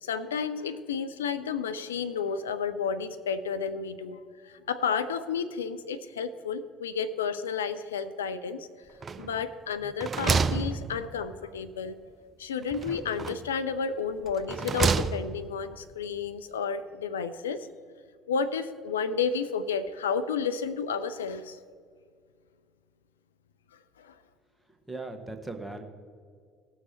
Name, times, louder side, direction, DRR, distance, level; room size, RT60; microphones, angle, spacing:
voice 1, 0.0-8.7 9.2-12.0 12.4-17.7 18.3-21.6 24.0-24.2, left 6 dB, 75° left, 12 dB, 0.4 m, -31 dB
sound 1, 9.0-9.5 9.8-11.4 12.7-13.6 14.3-15.5, right 4 dB, 30° right, 0.6 m, -29 dB
voice 2, 24.9-25.8, right 2 dB, 5° right, 4 dB, 1.4 m, -38 dB
18.0 x 6.3 x 4.4 m, 2.1 s
figure-of-eight pair, 55°, 0 cm